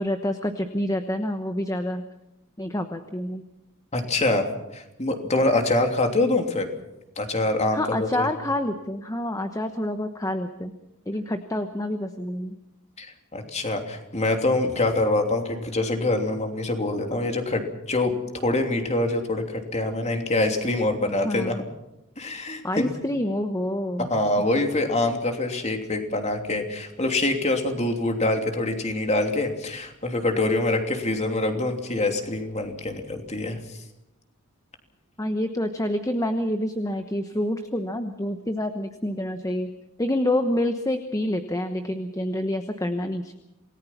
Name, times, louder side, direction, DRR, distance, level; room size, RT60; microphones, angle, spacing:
voice 1, 0.0-2.0 2.6-3.4 7.7-10.7 11.1-12.6 21.2-21.6 22.6-24.1 35.2-39.7 40.0-43.3, left 1 dB, 15° left, 7 dB, 1.1 m, -27 dB
voice 2, 3.9-4.5 4.7-6.7 7.2-8.3 13.0-13.1 13.3-18.1 18.4-21.6 22.2-22.9 24.0-33.8, left 2 dB, 30° left, 4 dB, 3.1 m, -25 dB
27.5 x 19.0 x 5.9 m, 0.89 s
head